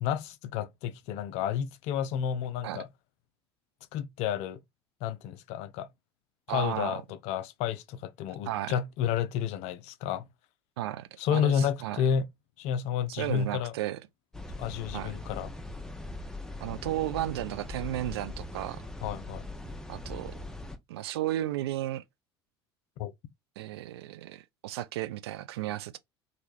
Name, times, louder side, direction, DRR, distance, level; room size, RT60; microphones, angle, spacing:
voice 1, 0.0-2.9 3.9-4.6 5.0-5.9 6.5-10.3 11.2-12.3 12.6-13.7 14.6-15.5 19.0-19.4 23.0-23.1, left 9 dB, 50° left, 0.4 m, -31 dB
voice 2, 6.5-7.0 8.5-8.8 10.8-12.0 13.2-14.0 14.9-15.1 16.6-18.8 19.9-20.3 20.9-22.0 23.6-26.0, right 14 dB, 70° right, 0.4 m, -34 dB
sound 1, 14.3-20.8, left 2 dB, 5° left, 0.6 m, -41 dB
3.1 x 2.5 x 3.0 m
figure-of-eight pair, 65°, 14 cm